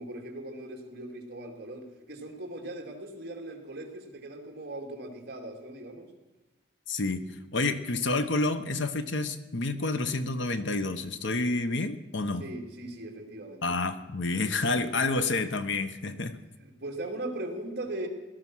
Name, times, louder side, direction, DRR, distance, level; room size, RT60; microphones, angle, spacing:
voice 1, 0.0-6.1 12.4-13.8 16.6-18.1, right 1 dB, 50° right, 2 dB, 2.6 m, -39 dB
voice 2, 6.9-12.5 13.6-16.4, left 3 dB, 65° left, 10 dB, 1.0 m, -29 dB
18.0 x 12.5 x 6.2 m, 1.2 s
head